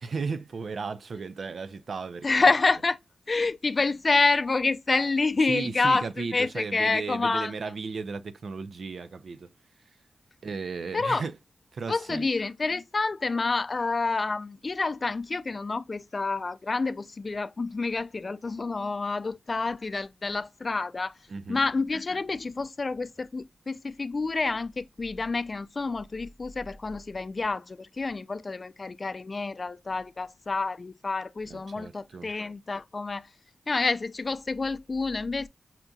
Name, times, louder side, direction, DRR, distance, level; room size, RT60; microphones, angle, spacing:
voice 1, 0.0-2.4 5.5-9.5 10.4-11.3 11.7-12.3 21.3-21.6 31.5-32.3, right 4 dB, 75° right, 0.5 m, -35 dB
voice 2, 2.2-3.0 3.3-7.7 10.9-11.2 11.9-21.2 21.5-33.3 33.7-35.5, left 3 dB, 45° left, 0.3 m, -28 dB
5.7 x 2.5 x 2.3 m
cardioid pair, 55°, 0 cm